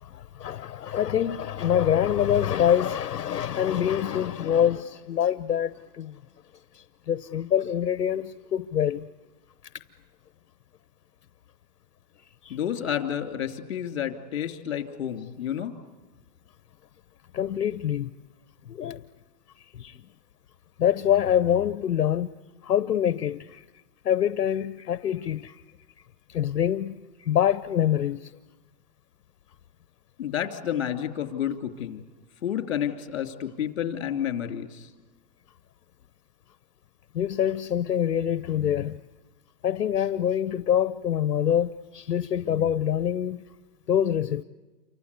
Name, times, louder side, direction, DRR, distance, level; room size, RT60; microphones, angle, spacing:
voice 1, 0.0-6.2 6.7-9.1 12.4-12.6 17.3-18.1 18.7-19.0 19.7-20.0 20.8-22.3 22.6-23.6 24.0-25.6 26.3-28.3 37.1-39.0 39.6-43.4 43.9-44.4, left 10 dB, 70° left, 0.9 m, -25 dB
voice 2, 12.5-15.7 30.2-32.1 32.4-34.9, left 9 dB, 40° left, 2.9 m, -30 dB
28.5 x 24.5 x 8.3 m
hypercardioid pair, 175°, 48 cm